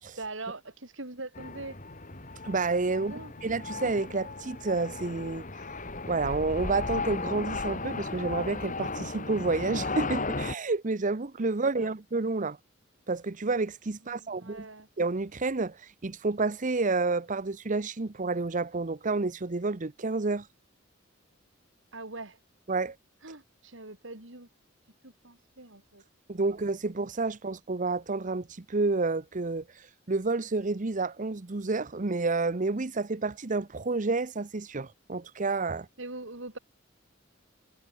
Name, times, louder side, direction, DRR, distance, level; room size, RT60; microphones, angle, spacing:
voice 1, 0.2-1.8 2.9-3.3 11.6-11.9 14.0-14.9 21.9-22.4 23.2-24.5 25.0-26.0 36.0-36.6, right 2 dB, 65° right, 4.2 m, -42 dB
sound 1, 1.3-10.5, left 3 dB, 40° left, 5.0 m, -35 dB
voice 2, 2.4-3.1 3.4-5.5 6.1-12.6 13.1-14.6 15.0-15.8 16.0-20.5 22.7-22.9 26.3-29.6 30.1-35.9, right 3 dB, 40° right, 0.8 m, -29 dB
head